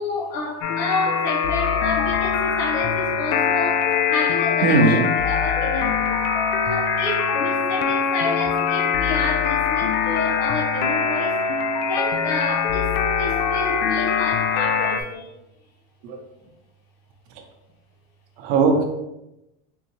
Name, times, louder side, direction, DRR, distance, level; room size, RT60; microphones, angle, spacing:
voice 1, 0.0-6.2 6.7-15.3, left 3 dB, 55° left, 0.8 m, -29 dB
sound 1, 0.6-15.0, left 6 dB, 70° left, 0.5 m, -22 dB
voice 2, 4.6-5.1 16.0-16.2 18.4-18.8, right 3 dB, 55° right, 0.7 m, -18 dB
3.8 x 2.7 x 2.8 m
supercardioid pair, 140°, 41 cm